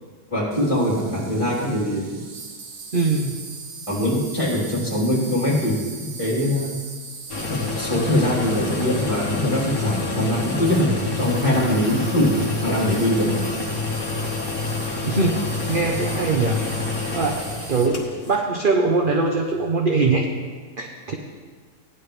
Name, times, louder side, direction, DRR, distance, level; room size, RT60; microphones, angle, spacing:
voice 1, 0.3-2.2 3.9-5.8 6.0-6.7 7.5-12.4 12.6-13.3, left 1 dB, 20° left, -7 dB, 3.6 m, -22 dB
Insect, 0.5-17.9, right 4 dB, 80° right, 1.6 m, -39 dB
voice 2, 2.9-3.4 15.1-15.4 15.7-16.6 17.1-17.4 17.7-20.3 20.8-21.1, right 3 dB, 40° right, 1 dB, 0.9 m, -21 dB
sound 1, 7.3-18.4, left 3 dB, 60° left, 1.7 m, -28 dB
16.5 x 10.5 x 3.3 m, 1.5 s
omnidirectional pair, 1.7 m